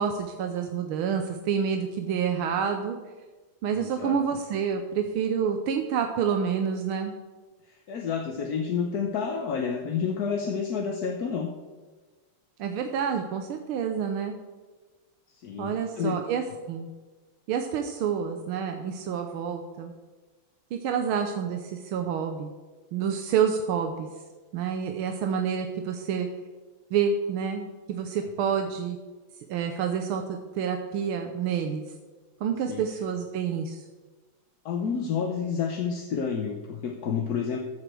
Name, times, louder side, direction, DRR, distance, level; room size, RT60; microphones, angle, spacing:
voice 1, 0.0-3.0 3.6-7.1 12.6-14.3 15.6-16.9 17.5-19.9 20.7-22.5 22.9-24.1 24.5-26.3 26.9-29.0 29.5-31.8 32.4-33.8, right 7 dB, 85° right, 5 dB, 1.7 m, -28 dB
voice 2, 3.7-4.2 7.6-11.5 15.3-16.2 28.4-28.5 32.7-32.8 34.6-37.6, left 6 dB, 55° left, 3 dB, 1.2 m, -30 dB
14.0 x 5.1 x 7.5 m, 1.3 s
omnidirectional pair, 2.3 m